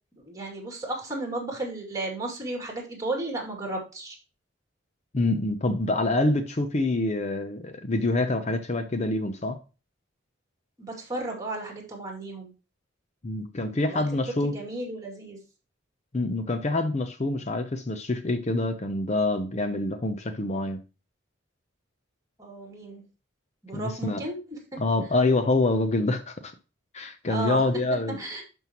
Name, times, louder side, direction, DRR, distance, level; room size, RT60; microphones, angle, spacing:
voice 1, 0.2-4.2 10.8-12.5 13.9-15.4 22.4-23.0 23.6-24.8 27.3-27.6 28.2-28.4, right 2 dB, 20° right, 2.5 m, -34 dB
voice 2, 5.1-9.6 13.2-14.5 16.1-20.8 23.7-24.2 24.8-26.5 26.9-28.2, left 2 dB, 35° left, 0.7 m, -26 dB
11.5 x 5.4 x 3.0 m
head